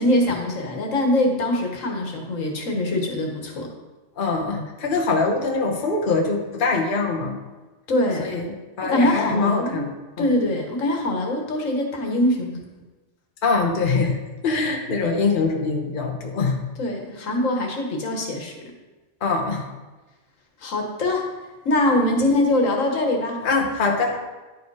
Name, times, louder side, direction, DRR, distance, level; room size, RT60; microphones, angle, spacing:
voice 1, 0.0-3.7 7.9-8.3 8.8-9.8 10.2-12.6 16.8-18.6 20.6-21.3 21.6-23.4, left 1 dB, 80° left, 2 dB, 1.6 m, -23 dB
voice 2, 4.2-7.4 8.2-10.3 13.4-14.2 14.4-16.6 19.2-19.6 23.4-24.2, left 4 dB, 45° left, 2 dB, 1.1 m, -23 dB
10.5 x 5.0 x 4.7 m, 1.2 s
omnidirectional pair, 1.3 m